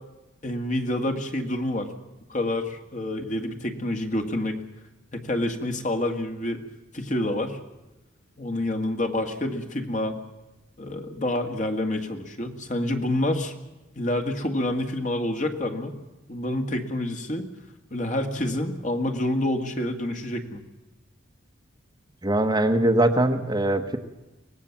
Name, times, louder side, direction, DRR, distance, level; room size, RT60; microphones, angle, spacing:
voice 1, 0.4-1.9 2.3-4.6 5.1-6.6 6.9-7.6 8.4-10.2 10.8-13.5 14.0-16.0 16.3-17.4 17.9-20.6, left 1 dB, 35° left, 5 dB, 2.0 m, -28 dB
voice 2, 22.2-24.0, right 1 dB, 20° right, 6 dB, 1.1 m, -21 dB
24.0 x 18.0 x 7.3 m, 1.0 s
head